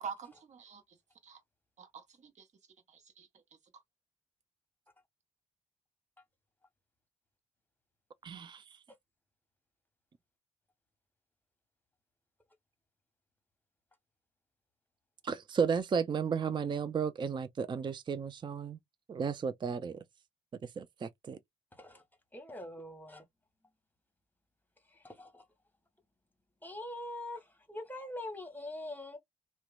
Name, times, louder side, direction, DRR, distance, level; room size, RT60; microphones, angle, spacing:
voice 1, 0.0-1.0 1.2-1.4 1.8-2.5 2.9-3.3 3.7-3.8, right 6 dB, 45° right, 1.0 m, -46 dB
voice 2, 8.2-8.8 15.2-18.8 19.1-20.0 20.6-21.4, right 6 dB, 30° right, 0.5 m, -34 dB
voice 3, 22.3-23.2 24.9-25.4 26.6-29.2, left 1 dB, 10° left, 1.1 m, -43 dB
2.8 x 2.2 x 2.3 m
hypercardioid pair, 45°, 16 cm